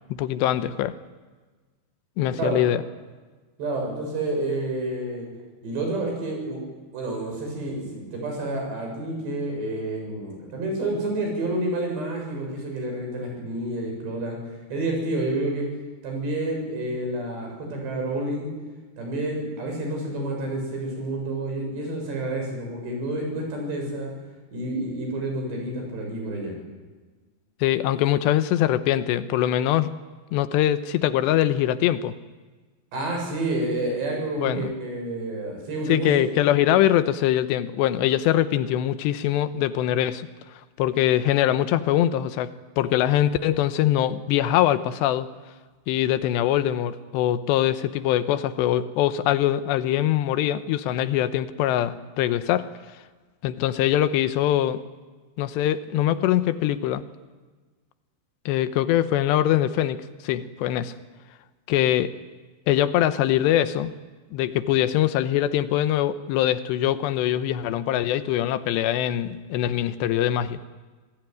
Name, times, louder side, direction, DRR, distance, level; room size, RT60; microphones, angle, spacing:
voice 1, 0.2-1.0 2.2-2.8 27.6-29.9 30.3-32.1 34.4-34.7 35.9-40.3 40.8-45.3 45.9-52.7 53.4-54.8 55.4-57.0 58.5-60.9 61.7-62.1 62.7-63.9 64.3-70.6, left 12 dB, 90° left, 12 dB, 3.1 m, -23 dB
voice 2, 3.6-5.3 5.6-6.6 6.9-14.4 14.7-15.7 16.0-18.5 19.0-24.1 24.5-26.5 32.9-36.1 36.6-36.7, right 2 dB, 85° right, 1 dB, 9.5 m, -29 dB
27.0 x 18.0 x 9.4 m, 1.3 s
omnidirectional pair, 4.8 m